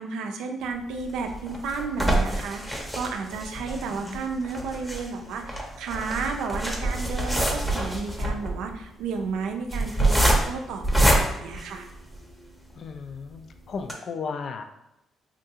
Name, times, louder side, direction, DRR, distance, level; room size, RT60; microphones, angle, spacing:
voice 1, 0.0-11.9, right 4 dB, 90° right, 4 dB, 0.4 m, -32 dB
sound 1, 1.0-12.4 12.9-13.0 13.3-13.4 13.8-13.9, right 1 dB, 5° left, 0.7 m, -26 dB
voice 2, 3.6-4.2 12.7-13.4 13.7-14.6, left 5 dB, 55° left, 7 dB, 0.3 m, -35 dB
3.7 x 2.3 x 2.7 m, 0.88 s
cardioid pair, 90°, 0 cm